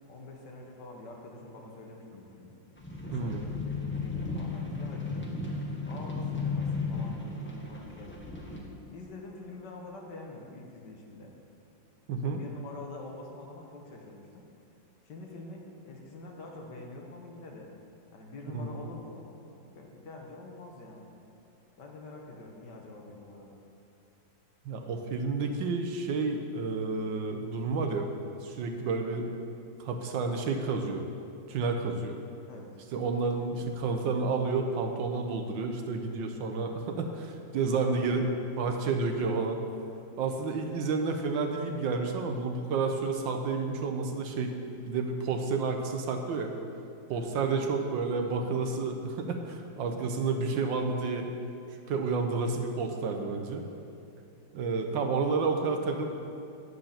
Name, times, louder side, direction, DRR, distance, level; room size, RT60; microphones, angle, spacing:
voice 1, 0.1-2.6 3.0-5.3 5.9-8.4 8.9-11.3 12.2-14.4 15.0-17.7 18.1-21.1 21.8-23.6 32.5-32.7 37.8-38.4 38.9-39.1 47.1-47.7, left 2 dB, 65° left, 0 dB, 1.8 m, -46 dB
sound 1, 2.8-8.6, left 4 dB, 10° left, 0.9 m, -34 dB
voice 2, 12.1-12.4 18.5-18.7 24.6-28.1 28.4-29.3 29.8-31.0 31.5-32.2 32.9-38.2 38.6-39.6 40.2-44.5 44.9-46.5 47.1-51.3 51.9-53.6 54.5-56.1, right 4 dB, 75° right, 4 dB, 1.5 m, -30 dB
9.4 x 7.9 x 5.7 m, 2.6 s
omnidirectional pair, 2.1 m